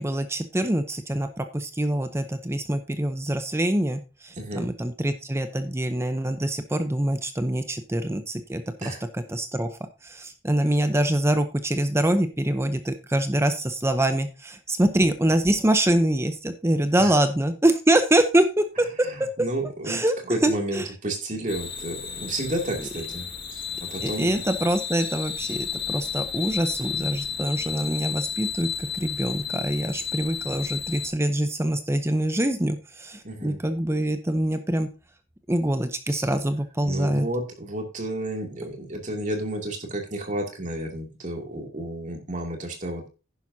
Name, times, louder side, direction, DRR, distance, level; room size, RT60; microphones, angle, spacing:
voice 1, 0.0-9.7 10.0-18.9 19.9-20.1 20.4-20.9 24.0-34.9 35.5-37.3, right 1 dB, 15° right, 9 dB, 0.7 m, -24 dB
voice 2, 4.4-4.7 8.8-9.0 17.0-17.1 19.0-20.0 20.3-24.4 33.2-33.6 36.1-36.3 36.9-43.1, right 1 dB, 40° right, 2 dB, 2.6 m, -32 dB
sound 1, 21.5-31.1, left 7 dB, 55° left, 2.0 m, -32 dB
10.5 x 10.5 x 2.8 m, 0.30 s
head